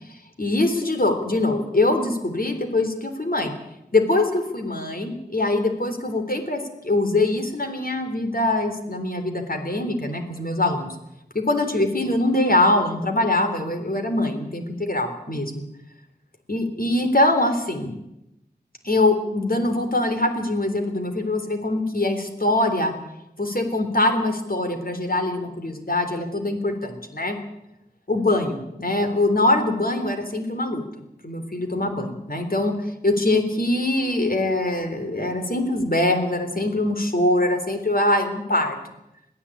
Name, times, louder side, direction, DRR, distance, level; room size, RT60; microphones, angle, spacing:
voice 1, 0.4-3.5 3.9-11.0 11.4-15.6 16.5-17.9 18.8-22.9 23.4-27.4 28.1-32.7 33.0-38.8, left 2 dB, 60° left, 5 dB, 3.7 m, -23 dB
21.5 x 14.5 x 8.6 m, 0.86 s
wide cardioid pair, 40°, 17 cm